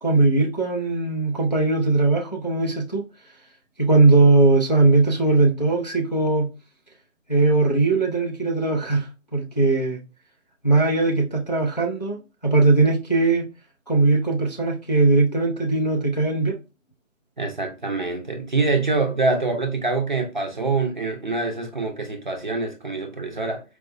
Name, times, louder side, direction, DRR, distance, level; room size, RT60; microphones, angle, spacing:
voice 1, 0.0-3.0 3.8-6.5 7.3-10.0 10.6-13.5 13.9-16.6, right 3 dB, 35° left, 0.4 m, -19 dB
voice 2, 17.4-23.6, right 3 dB, 40° right, 0.5 m, -25 dB
4.5 x 2.1 x 2.5 m
figure-of-eight pair, 160°, 40 cm